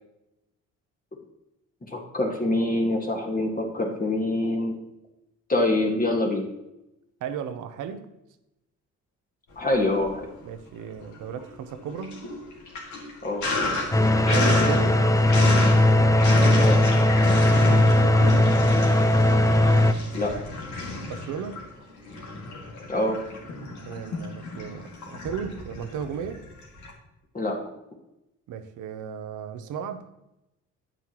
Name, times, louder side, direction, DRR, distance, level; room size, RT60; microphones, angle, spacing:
voice 1, 1.9-4.8 5.5-6.4 9.6-10.3 13.2-13.5 16.6-16.8 20.1-20.3 22.9-23.2 27.3-27.6, left 2 dB, 30° left, 0 dB, 1.7 m, -25 dB
voice 2, 7.2-8.1 10.4-12.2 14.3-15.0 17.7-18.6 21.1-21.6 23.8-26.4 28.5-30.1, right 7 dB, 80° right, 10 dB, 0.8 m, -35 dB
Sink (filling or washing), 9.6-10.5 10.8-26.9, left 2 dB, 80° left, 2.2 m, -32 dB
sound 1, 13.9-19.9, left 1 dB, 10° left, 0.5 m, -18 dB
9.3 x 7.9 x 3.0 m, 0.91 s
cardioid pair, 90°, 30 cm